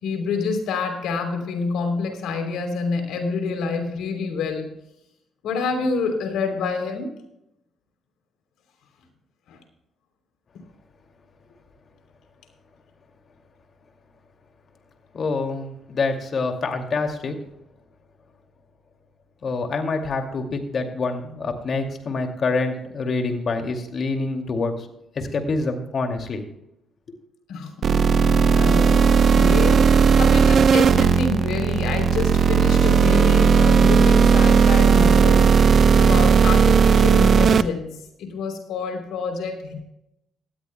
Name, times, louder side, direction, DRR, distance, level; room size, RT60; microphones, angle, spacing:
voice 1, 0.0-4.7 5.4-7.1 9.5-9.6 27.5-27.7 28.5-35.5 35.9-39.7, left 4 dB, 85° left, 5 dB, 3.2 m, -27 dB
voice 2, 15.1-17.4 19.4-24.9 25.2-26.4, left 3 dB, 50° left, 5 dB, 2.3 m, -26 dB
sound 1, 27.8-37.6, right 5 dB, 55° right, 0.7 m, -16 dB
17.5 x 13.5 x 2.2 m, 0.83 s
cardioid pair, 90°, 0 cm